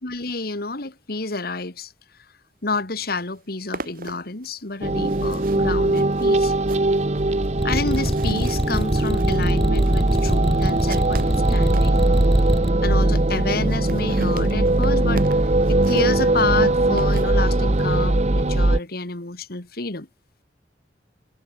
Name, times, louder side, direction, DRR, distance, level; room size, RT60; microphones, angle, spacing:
voice 1, 0.0-1.9 2.6-6.5 7.6-12.1 12.8-15.4 15.7-20.1, left 3 dB, 60° left, 2.3 m, -29 dB
sound 1, 2.8-2.9 3.1-12.0 12.6-12.7 12.9-13.0 13.2-13.3 13.5-17.9, right 3 dB, 55° right, 7.1 m, -40 dB
sound 2, 4.8-18.8, right 2 dB, 40° right, 1.1 m, -20 dB
sound 3, 7.6-12.7, equal, 5° left, 1.0 m, -24 dB
head